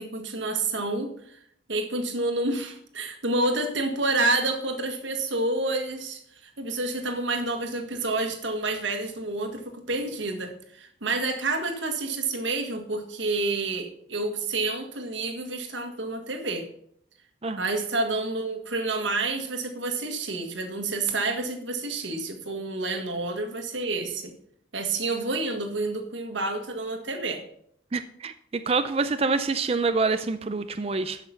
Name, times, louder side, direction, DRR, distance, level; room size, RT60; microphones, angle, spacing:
voice 1, 0.0-1.4 1.7-16.7 17.6-24.3 24.7-27.4, right 2 dB, 80° right, 5 dB, 1.7 m, -29 dB
voice 2, 27.9-31.2, right 4 dB, 30° right, 10 dB, 0.4 m, -26 dB
11.5 x 6.0 x 5.7 m, 0.68 s
head